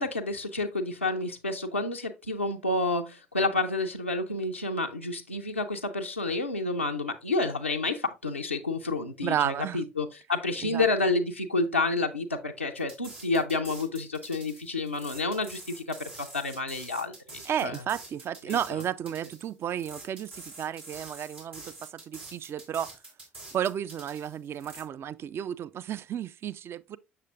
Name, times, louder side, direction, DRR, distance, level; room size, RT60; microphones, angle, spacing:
voice 1, 0.0-15.8 16.1-17.7 18.5-18.8, left 3 dB, 90° left, 0.4 m, -29 dB
voice 2, 9.2-9.8 10.6-10.9 17.5-23.0 23.5-27.0, right 9 dB, 40° right, 0.4 m, -32 dB
sound 1, 12.8-24.8, right 2 dB, 85° right, 2.5 m, -46 dB
6.8 x 6.6 x 2.4 m
figure-of-eight pair, 55°, 6 cm